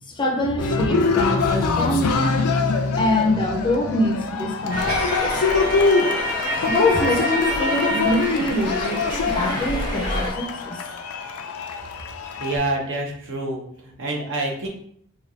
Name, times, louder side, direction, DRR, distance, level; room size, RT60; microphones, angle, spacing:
voice 1, 0.2-2.3 3.0-5.0 6.6-9.0 9.3-10.8, left 1 dB, 20° left, 0 dB, 0.5 m, -24 dB
Cheering, 0.6-12.6, left 4 dB, 90° left, 0.4 m, -24 dB
sound 1, 4.7-10.3, equal, 85° right, 1.1 m, -27 dB
voice 2, 12.4-14.7, right 2 dB, 60° right, 0 dB, 0.9 m, -27 dB
3.3 x 2.3 x 3.9 m, 0.66 s
head